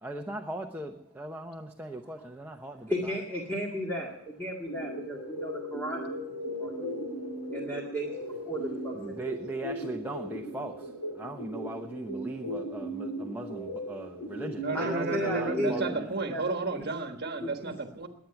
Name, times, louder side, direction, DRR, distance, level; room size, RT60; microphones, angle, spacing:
voice 1, 0.0-2.9 8.9-10.9 11.1-16.1, right 1 dB, 10° right, 2 dB, 0.8 m, -39 dB
voice 2, 2.9-4.1 4.4-6.2 6.6-6.9 7.5-8.1 8.5-9.2 14.7-15.9 16.3-16.4 16.7-16.9 17.4-17.7, equal, 10° left, -2 dB, 1.9 m, -34 dB
sound 1, 4.7-15.9, equal, 90° left, 7.0 m, -37 dB
voice 3, 14.6-18.1, right 3 dB, 45° right, 6 dB, 1.4 m, -32 dB
21.5 x 9.2 x 5.9 m, 0.82 s
head